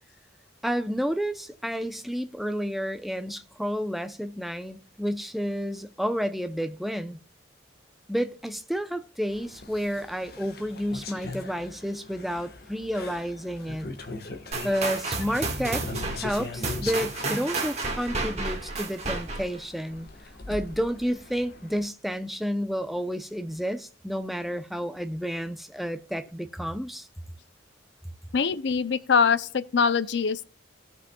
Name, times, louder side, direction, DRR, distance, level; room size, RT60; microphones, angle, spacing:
voice 1, 0.6-7.2 8.1-13.9 14.6-15.8 16.1-20.1 20.5-27.1, equal, ahead, 0.6 m, -30 dB
sound 1, 9.3-21.9, left 3 dB, 55° left, 1.3 m, -41 dB
sound 2, 14.5-19.6, right 3 dB, 35° right, 1.6 m, -31 dB
voice 2, 28.3-30.4, left 5 dB, 75° left, 0.5 m, -23 dB
18.0 x 6.2 x 2.3 m
head